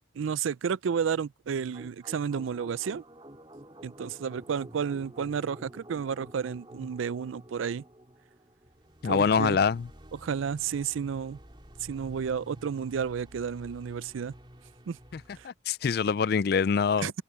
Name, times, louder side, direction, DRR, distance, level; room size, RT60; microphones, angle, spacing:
voice 1, 0.1-3.0 3.8-7.8 9.0-9.6 10.1-11.4 11.8-14.3 14.9-15.0 15.4-15.5 17.0-17.2, right 7 dB, 85° right, 0.4 m, -31 dB
sound 1, 1.7-15.5, right 1 dB, 25° right, 3.0 m, -50 dB
voice 2, 9.0-9.9 15.1-17.1, left 6 dB, 50° left, 0.3 m, -25 dB
head